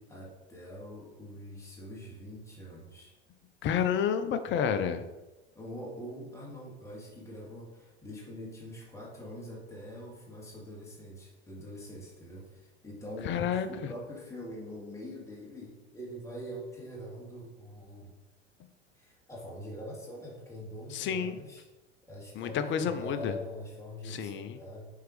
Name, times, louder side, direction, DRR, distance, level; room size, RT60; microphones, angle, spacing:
voice 1, 0.1-3.1 5.5-18.2 18.9-21.6 22.1-24.9, equal, 10° left, -4 dB, 2.4 m, -44 dB
voice 2, 3.6-5.0 13.2-13.7 20.9-21.4 22.4-23.3 24.1-24.6, left 8 dB, 35° left, 10 dB, 0.7 m, -30 dB
7.9 x 4.7 x 4.9 m, 1.1 s
figure-of-eight pair, 75°, 32 cm